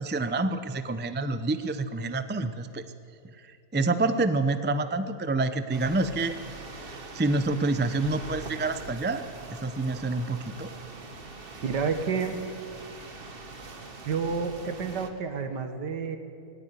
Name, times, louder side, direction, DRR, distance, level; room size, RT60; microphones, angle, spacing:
voice 1, 0.0-2.8 3.5-6.3 7.1-9.2 9.6-10.7, right 2 dB, 15° right, 10 dB, 0.3 m, -27 dB
sound 1, 5.7-15.1, right 3 dB, 35° right, 1.5 m, -43 dB
voice 2, 11.6-12.4 14.0-16.2, right 5 dB, 80° right, 8 dB, 2.1 m, -29 dB
18.5 x 17.5 x 9.8 m, 2.4 s
omnidirectional pair, 1.8 m